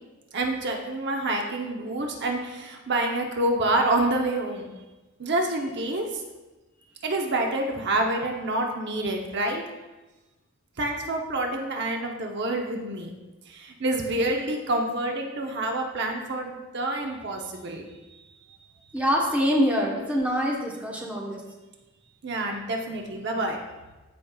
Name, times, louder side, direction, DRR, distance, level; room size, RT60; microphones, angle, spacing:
voice 1, 0.3-4.7 5.2-6.2 7.0-9.6 10.8-13.1 13.5-17.9 22.2-23.6, right 2 dB, 55° right, 2 dB, 0.8 m, -27 dB
voice 2, 18.9-21.4, equal, 5° right, -2 dB, 1.0 m, -24 dB
13.5 x 5.3 x 2.3 m, 1.1 s
head